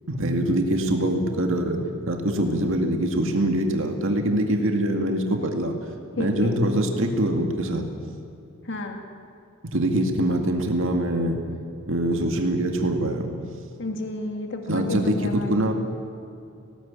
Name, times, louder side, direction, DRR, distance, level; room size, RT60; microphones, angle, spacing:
voice 1, 0.1-5.8 6.2-7.9 9.7-11.4 11.9-13.3 14.7-15.7, right 1 dB, 60° right, 3 dB, 2.1 m, -24 dB
voice 2, 6.2-6.5 8.6-9.0 13.8-15.7, left 2 dB, 55° left, 3 dB, 2.1 m, -31 dB
19.0 x 17.5 x 8.8 m, 2.6 s
head